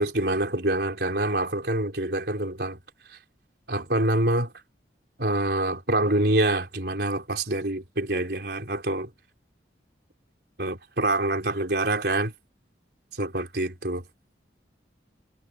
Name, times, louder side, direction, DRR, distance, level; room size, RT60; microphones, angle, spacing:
voice 1, 0.0-2.8 3.1-3.2 3.7-4.5 5.2-9.1 10.6-12.3 13.1-14.0, right 1 dB, 60° right, 4.3 m, -26 dB
head